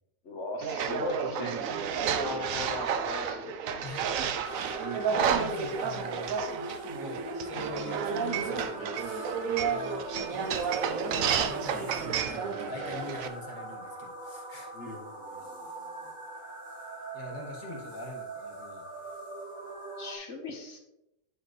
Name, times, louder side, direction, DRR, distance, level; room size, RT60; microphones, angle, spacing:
voice 1, 0.2-1.7 2.0-3.8 14.7-16.1 20.0-20.8, left 2 dB, 60° left, 3 dB, 1.5 m, -39 dB
sound 1, 0.6-13.3, right 7 dB, 75° right, 1.0 m, -31 dB
voice 2, 3.8-6.4 6.7-9.4 9.6-10.5 11.0-14.7 15.4-15.5 17.1-18.8, left 2 dB, 35° left, -2 dB, 1.8 m, -43 dB
sound 2, 4.4-20.2, right 2 dB, 15° right, 1.8 m, -41 dB
10.0 x 4.9 x 3.2 m, 0.87 s
omnidirectional pair, 1.4 m